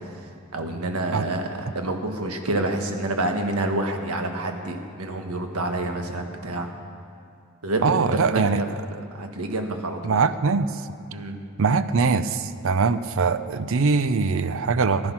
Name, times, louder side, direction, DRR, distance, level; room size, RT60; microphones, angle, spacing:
voice 1, 0.5-6.7 7.6-10.2 11.1-11.4, right 2 dB, 90° right, 4 dB, 1.4 m, -28 dB
voice 2, 7.8-8.6 10.0-10.7 11.6-15.1, right 4 dB, 65° right, 13 dB, 0.5 m, -22 dB
15.0 x 10.5 x 5.9 m, 2.3 s
head